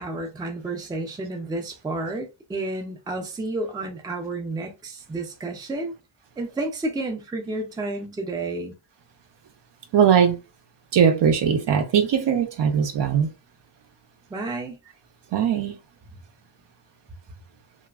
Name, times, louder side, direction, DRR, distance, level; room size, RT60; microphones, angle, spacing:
voice 1, 0.0-5.9 6.4-8.7 14.3-14.8, right 2 dB, 10° right, 0.3 m, -31 dB
voice 2, 9.9-10.4 10.9-13.3 15.3-15.8, right 7 dB, 65° right, 0.6 m, -20 dB
3.1 x 2.0 x 2.3 m
wide cardioid pair, 180°, 47 cm